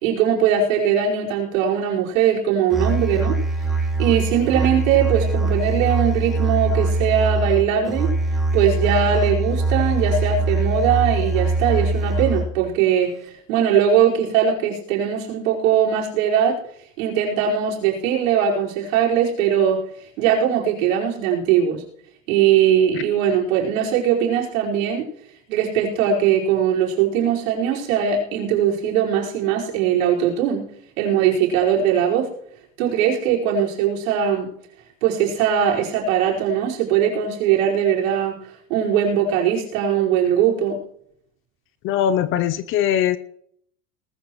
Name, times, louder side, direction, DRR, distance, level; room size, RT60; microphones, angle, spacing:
voice 1, 0.0-3.4 4.0-8.1 8.5-16.6 17.0-19.8 20.2-21.8 22.3-25.1 25.5-30.7 31.0-32.3 32.8-34.5 35.0-38.4 38.7-40.8, right 8 dB, 70° right, -2 dB, 4.8 m, -20 dB
Musical instrument, 2.7-12.7, right 2 dB, ahead, 2.3 m, -22 dB
voice 2, 41.8-43.2, left 10 dB, 30° left, 15 dB, 0.6 m, -21 dB
19.0 x 14.0 x 3.1 m, 0.67 s
supercardioid pair, 150°, 41 cm